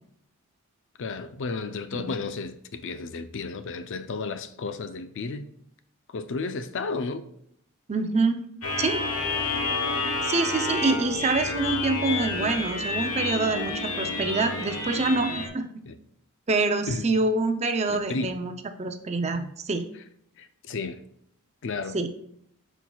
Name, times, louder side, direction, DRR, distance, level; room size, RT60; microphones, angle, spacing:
voice 1, 1.0-5.5 6.1-7.3 15.9-16.0 16.9-17.1 17.9-18.4 19.3-19.5 20.4-21.0 21.6-22.0, left 4 dB, 55° left, 0.5 m, -33 dB
voice 2, 7.9-8.4 8.8-9.0 10.2-15.7 16.5-18.5 18.8-19.4 19.7-19.8 21.9-22.1, right 3 dB, 30° right, 0.5 m, -26 dB
sound 1, 8.6-15.5, left 3 dB, 70° left, 1.1 m, -29 dB
11.0 x 4.6 x 2.3 m
head